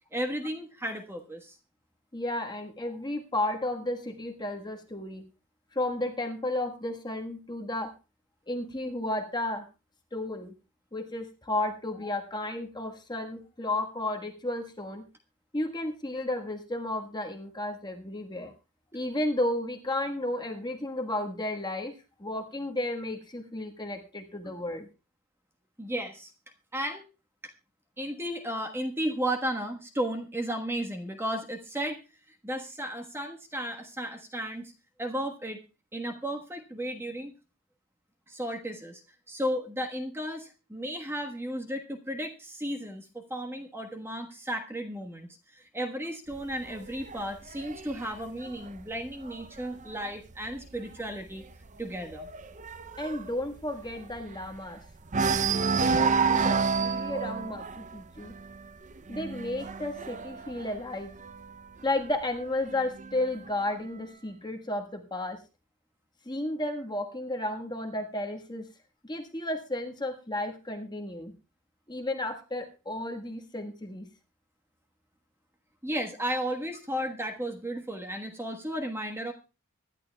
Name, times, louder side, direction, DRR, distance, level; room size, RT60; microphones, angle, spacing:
voice 1, 0.1-1.6 24.4-24.5 25.8-26.3 26.7-27.0 28.0-32.0 32.3-34.7 35.0-35.6 35.9-37.3 38.3-39.0 39.3-51.4 51.8-52.3 75.8-79.3, equal, 10° right, 3 dB, 1.3 m, -34 dB
voice 2, 2.1-5.2 5.7-7.9 8.5-9.7 10.1-10.5 10.9-15.0 15.5-18.5 18.9-21.9 22.2-24.9 49.8-49.9 53.0-54.8 55.7-58.3 59.1-61.1 61.8-65.4 66.2-68.7 69.0-71.3 71.9-74.1, left 1 dB, 20° left, 3 dB, 1.5 m, -33 dB
sound 1, 46.3-49.9 50.3-50.7 50.9-51.0 51.4-54.7 55.1-61.6 62.5-63.5, right 5 dB, 35° right, 0.6 m, -30 dB
25.0 x 11.0 x 2.3 m, 0.31 s
head